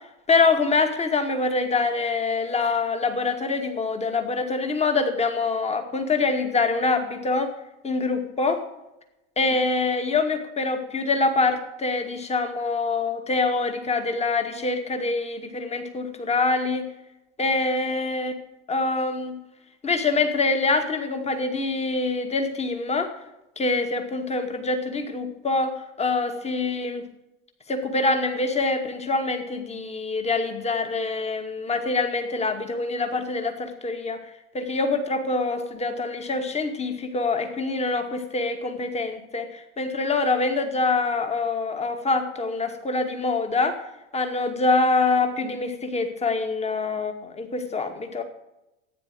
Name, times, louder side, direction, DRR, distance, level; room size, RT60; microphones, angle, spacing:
voice 1, 0.3-7.5 7.8-8.6 9.4-16.9 17.4-18.3 18.7-19.4 19.8-23.1 23.6-27.0 27.7-34.2 34.5-43.8 44.1-48.2, left 3 dB, 15° left, 6 dB, 2.2 m, -25 dB
15.0 x 9.7 x 6.9 m, 0.93 s
figure-of-eight pair, 85°, 39 cm